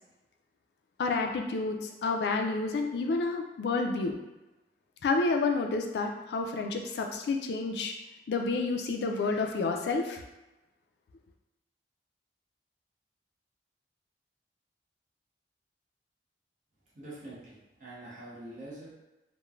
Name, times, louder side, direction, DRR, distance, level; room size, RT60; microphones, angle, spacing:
voice 1, 1.0-4.1 5.0-7.9 8.3-10.2, left 3 dB, 75° left, 3 dB, 0.3 m, -29 dB
voice 2, 17.0-19.0, right 1 dB, 45° right, -8 dB, 0.7 m, -45 dB
3.0 x 2.1 x 2.4 m, 1.0 s
head